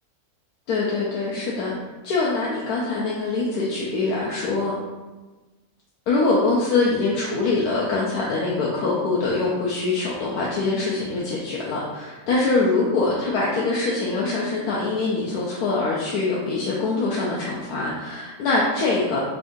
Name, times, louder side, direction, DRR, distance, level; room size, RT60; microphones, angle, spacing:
voice 1, 0.7-1.7 2.0-4.7 6.1-19.2, left 3 dB, 85° left, -5 dB, 1.1 m, -23 dB
3.6 x 2.6 x 3.6 m, 1.2 s
omnidirectional pair, 1.6 m